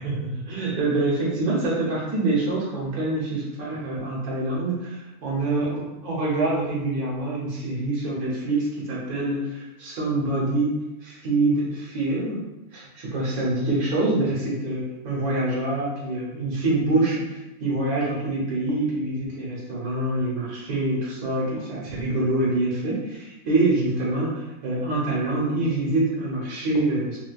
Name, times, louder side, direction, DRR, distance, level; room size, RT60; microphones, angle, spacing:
voice 1, 0.0-10.7 11.0-12.4 12.7-27.2, right 2 dB, 75° right, -5 dB, 1.4 m, -25 dB
4.2 x 2.3 x 2.3 m, 1.0 s
omnidirectional pair, 1.6 m